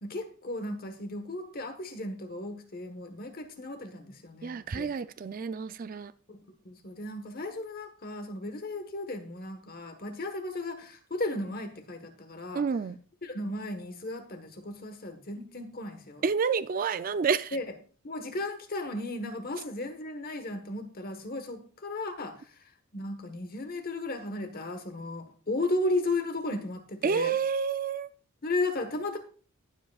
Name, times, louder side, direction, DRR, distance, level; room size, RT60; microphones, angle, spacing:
voice 1, 0.0-4.9 6.3-12.6 13.2-16.2 17.5-17.6 18.0-22.3 22.9-27.4 28.4-29.2, left 2 dB, 40° left, 1.3 m, -35 dB
voice 2, 4.4-6.1 12.5-13.0 16.2-17.6 27.0-28.1, right 6 dB, 40° right, 0.3 m, -29 dB
19.5 x 7.4 x 2.4 m
head